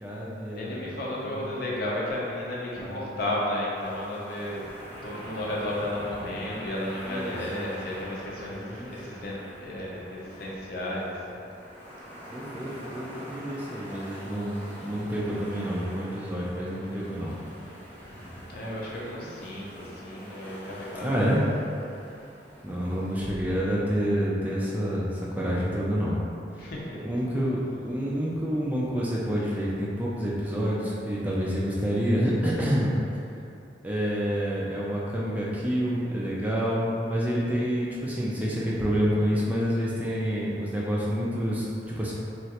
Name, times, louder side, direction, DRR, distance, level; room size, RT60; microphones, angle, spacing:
voice 1, 0.0-1.5 2.8-3.1 7.1-7.7 8.5-9.2 12.3-17.3 19.2-19.3 21.0-21.4 22.6-26.2 26.5-32.9 33.8-42.1, equal, 10° right, -6 dB, 0.3 m, -28 dB
voice 2, 0.5-4.6 5.0-11.4 18.1-21.2 23.2-23.4 26.6-27.2, left 1 dB, 55° left, -5 dB, 0.6 m, -33 dB
sound 1, 3.7-23.3, equal, 10° left, 0.8 m, -44 dB
3.1 x 2.4 x 2.8 m, 2.6 s
head